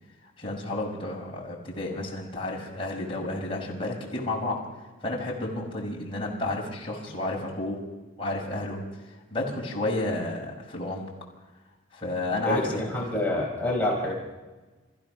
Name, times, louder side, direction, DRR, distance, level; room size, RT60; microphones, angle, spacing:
voice 1, 0.4-4.6 5.0-7.8 8.2-8.8 9.0-11.1 11.9-12.8 13.1-13.2, left 2 dB, 25° left, -2 dB, 5.5 m, -31 dB
voice 2, 12.4-14.1, left 1 dB, 10° left, -4 dB, 4.8 m, -27 dB
28.0 x 15.5 x 6.3 m, 1.2 s
head